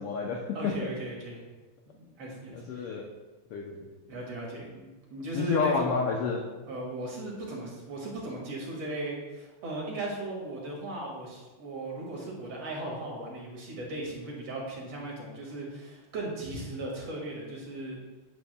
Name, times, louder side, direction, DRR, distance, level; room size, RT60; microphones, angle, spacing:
voice 1, 0.0-0.9 2.5-3.0 3.5-3.9 5.3-6.5, left 5 dB, 80° left, 1 dB, 1.3 m, -30 dB
voice 2, 0.5-1.4 1.9-2.9 4.1-6.0 6.7-18.0, right 2 dB, 55° right, -3 dB, 3.0 m, -37 dB
10.0 x 9.9 x 2.2 m, 1.2 s
omnidirectional pair, 3.5 m